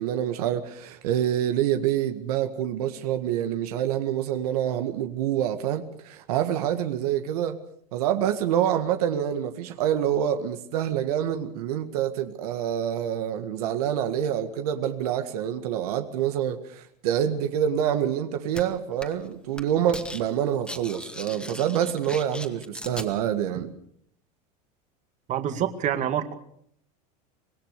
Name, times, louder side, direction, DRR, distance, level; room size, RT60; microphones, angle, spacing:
voice 1, 0.0-7.6 7.9-23.7, right 10 dB, 80° right, 1.9 m, -26 dB
sound 1, 18.5-18.6 19.0-19.3 19.5-20.2 20.5-23.1, left 1 dB, 5° left, 2.1 m, -38 dB
voice 2, 25.3-26.4, right 10 dB, 40° right, 2.2 m, -26 dB
25.5 x 19.5 x 6.7 m
supercardioid pair, 120°, 19 cm